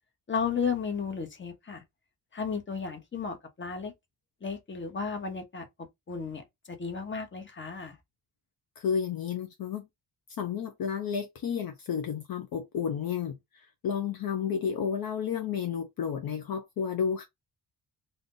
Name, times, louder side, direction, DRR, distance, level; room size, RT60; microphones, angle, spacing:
voice 1, 0.3-1.8 2.3-3.9 4.4-5.7 6.1-8.0, left 5 dB, 25° left, 1.0 m, -34 dB
voice 2, 8.8-9.8 10.4-17.2, left 7 dB, 55° left, 0.7 m, -31 dB
2.6 x 2.5 x 3.7 m
cardioid pair, 70°, 41 cm